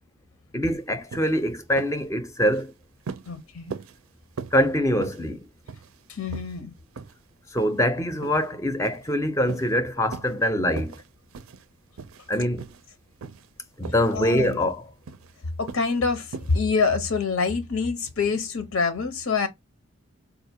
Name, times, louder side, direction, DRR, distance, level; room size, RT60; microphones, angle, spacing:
voice 1, 0.5-2.7 4.5-5.5 7.5-11.0 12.3-12.6 13.8-14.8, equal, 15° left, 0.5 m, -24 dB
sound 1, 0.6-0.8 1.1-1.4 1.8-2.0 2.4-2.7 3.1-3.3 3.7-4.0 4.4-4.6 5.0-5.3 5.7-6.0 6.3-6.6 7.0-7.1 7.6-7.8 8.2-8.5 8.8-9.1 9.5-9.7 10.1-10.4 10.7-11.1 11.3-11.7 12.0-12.3 12.6-12.9 13.2-13.5 13.8-14.2 14.4-14.7 15.1-15.3 15.7-15.9 16.3-16.6, right 5 dB, 85° right, 0.5 m, -39 dB
voice 2, 3.3-3.8 6.1-6.7 14.1-14.6 15.6-19.5, left 4 dB, 90° left, 0.7 m, -26 dB
4.1 x 2.5 x 2.7 m
head